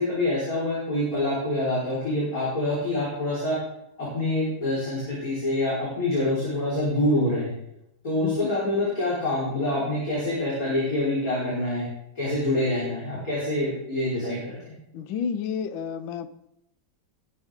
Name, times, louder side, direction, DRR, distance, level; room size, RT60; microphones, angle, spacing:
voice 1, 0.0-3.6 4.0-7.5 8.0-11.8 12.2-14.8, left 1 dB, 45° left, -8 dB, 5.3 m, -26 dB
voice 2, 14.9-16.3, left 7 dB, 85° left, 12 dB, 1.5 m, -30 dB
20.5 x 9.2 x 3.7 m, 0.80 s
omnidirectional pair, 2.1 m